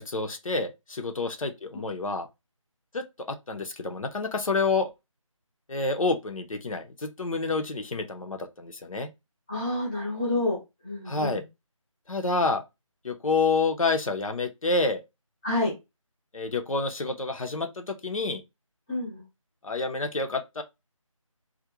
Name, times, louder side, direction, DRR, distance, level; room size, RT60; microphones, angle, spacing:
voice 1, 0.0-2.3 2.9-4.9 5.7-9.1 11.1-11.4 12.1-12.6 13.0-15.0 16.3-18.4 19.6-20.6, left 3 dB, 75° left, 0.6 m, -28 dB
voice 2, 9.5-10.6 10.8-11.4 15.4-15.7 18.9-19.2, left 2 dB, 10° left, 0.6 m, -28 dB
2.4 x 2.1 x 2.8 m
figure-of-eight pair, 165°, 18 cm